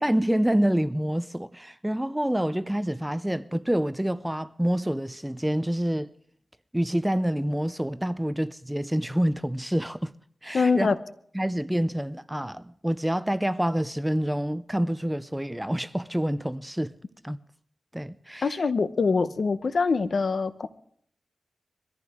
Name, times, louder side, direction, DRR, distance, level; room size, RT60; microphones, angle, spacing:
voice 1, 0.0-6.1 6.7-10.1 10.4-10.9 11.3-16.9 17.2-17.4 17.9-18.6, equal, 5° right, 0.5 m, -27 dB
voice 2, 10.5-10.9 18.4-20.7, left 4 dB, 60° left, 0.9 m, -24 dB
23.0 x 14.5 x 3.6 m
wide cardioid pair, 95°, 0 cm